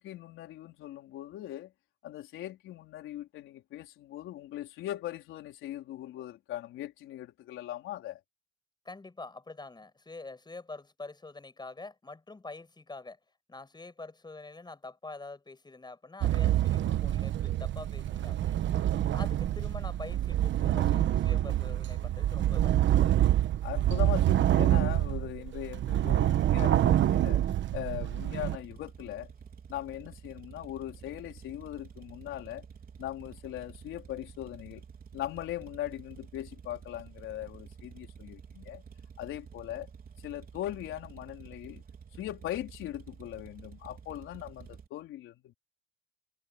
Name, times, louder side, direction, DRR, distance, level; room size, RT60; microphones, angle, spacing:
voice 1, 0.0-1.7 2.0-8.2 23.6-27.4 27.7-29.3 29.7-32.7 33.0-34.8 35.1-38.8 39.2-39.9 40.2-41.8 42.2-45.5, left 13 dB, 90° left, 4.2 m, -40 dB
voice 2, 8.9-13.2 13.5-23.4, left 3 dB, 20° left, 6.9 m, -46 dB
sound 1, 16.2-28.6, right 12 dB, 70° right, 1.2 m, -26 dB
sound 2, 28.4-44.9, right 6 dB, 45° right, 4.3 m, -50 dB
cardioid pair, 90°, 20 cm